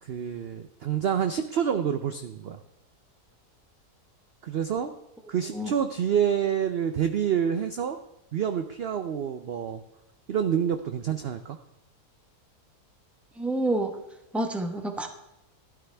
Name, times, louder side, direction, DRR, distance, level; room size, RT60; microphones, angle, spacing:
voice 1, 0.0-2.6 4.4-4.9 5.3-8.0 8.3-9.8 10.3-11.6, right 8 dB, 60° right, 8 dB, 0.6 m, -27 dB
voice 2, 13.4-13.9 14.3-15.1, right 1 dB, ahead, 5 dB, 0.9 m, -28 dB
13.0 x 12.0 x 3.4 m, 0.94 s
omnidirectional pair, 1.7 m